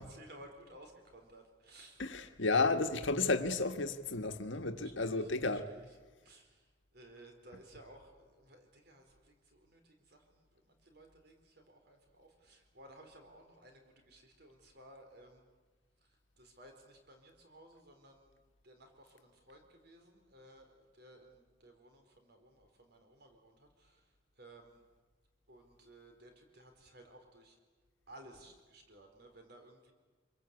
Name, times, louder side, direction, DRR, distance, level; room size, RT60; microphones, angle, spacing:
voice 1, 0.0-2.1 2.5-2.8 4.8-5.3 5.7-5.9 6.2-6.6 6.9-15.4 16.4-18.4 18.6-24.0 24.4-24.8 25.5-27.6 28.1-29.9, right 1 dB, 55° right, 4.4 m, -57 dB
voice 2, 2.0-5.7, left 3 dB, 75° left, 1.6 m, -32 dB
27.0 x 22.5 x 8.4 m
head